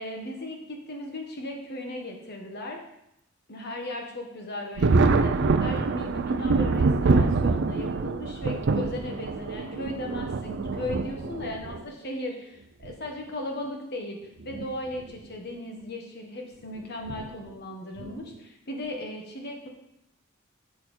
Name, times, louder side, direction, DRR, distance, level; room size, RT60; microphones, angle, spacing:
voice 1, 0.0-2.8 3.5-14.2 14.4-19.7, left 1 dB, 50° left, 2 dB, 1.5 m, -37 dB
Thunder, 4.8-11.8 12.8-12.9 14.4-14.7 15.0-15.1 17.1-17.3 18.0-18.3, right 3 dB, 55° right, 0.5 m, -25 dB
8.2 x 6.4 x 4.4 m, 0.81 s
head